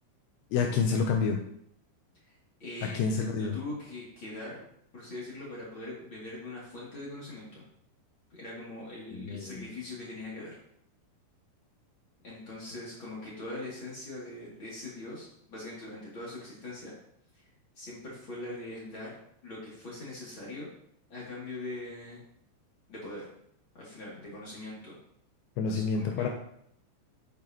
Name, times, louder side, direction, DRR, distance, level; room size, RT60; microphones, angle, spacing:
voice 1, 0.5-1.4 2.8-3.6 9.1-9.7 25.6-26.3, left 5 dB, 85° left, 2 dB, 2.6 m, -28 dB
voice 2, 2.3-4.6 4.9-7.6 8.4-10.6 12.2-16.9 17.3-17.4 17.7-19.1 19.4-20.7 21.1-22.2 22.9-23.3 23.7-24.9 25.7-26.3, left 2 dB, 35° left, -6 dB, 2.5 m, -42 dB
8.7 x 8.6 x 3.0 m, 0.71 s
omnidirectional pair, 5.9 m